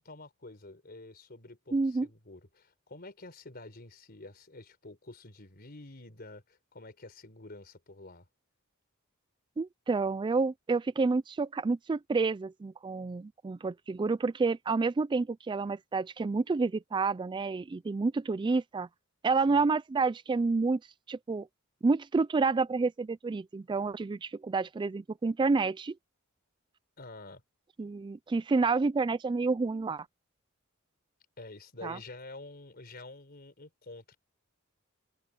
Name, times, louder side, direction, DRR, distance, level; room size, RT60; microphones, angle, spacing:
voice 1, 0.0-8.3 19.5-19.7 27.0-27.4 31.4-34.2, left 2 dB, 45° left, 4.1 m, -48 dB
voice 2, 1.7-2.1 9.6-18.9 19.2-20.8 21.1-21.5 21.8-25.9 27.8-30.1 31.8-32.0, right 4 dB, 20° right, 0.3 m, -29 dB
open air
head